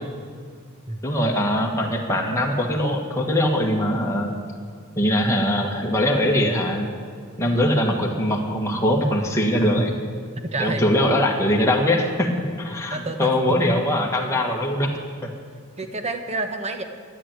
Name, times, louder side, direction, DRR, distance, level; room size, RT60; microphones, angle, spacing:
voice 1, 1.0-4.3 5.0-6.9 7.4-9.9 10.6-12.3 12.6-14.9 15.2-15.3, left 1 dB, 15° left, 0 dB, 1.6 m, -21 dB
voice 2, 10.4-10.8 12.9-13.3 13.6-13.8 15.8-16.8, right 2 dB, 30° right, 7 dB, 1.1 m, -28 dB
13.5 x 9.2 x 8.9 m, 2.1 s
head